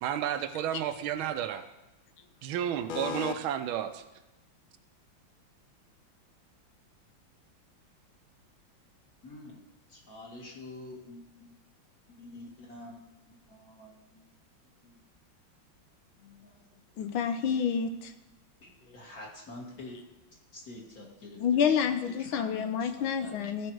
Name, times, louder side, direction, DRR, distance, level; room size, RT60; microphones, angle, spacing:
voice 1, 0.0-1.6 2.4-4.0, right 10 dB, 85° right, 10 dB, 1.5 m, -32 dB
voice 2, 2.9-3.3 17.0-18.1 21.4-23.7, left 7 dB, 85° left, 9 dB, 1.6 m, -29 dB
voice 3, 9.2-9.5 9.9-11.5 12.2-13.0 13.3-14.2 14.8-14.9 16.2-16.6 17.2-17.4 18.6-20.0 20.5-22.9 23.2-23.6, left 2 dB, 50° left, -2 dB, 2.1 m, -47 dB
14.5 x 5.4 x 4.6 m, 0.99 s
omnidirectional pair, 2.2 m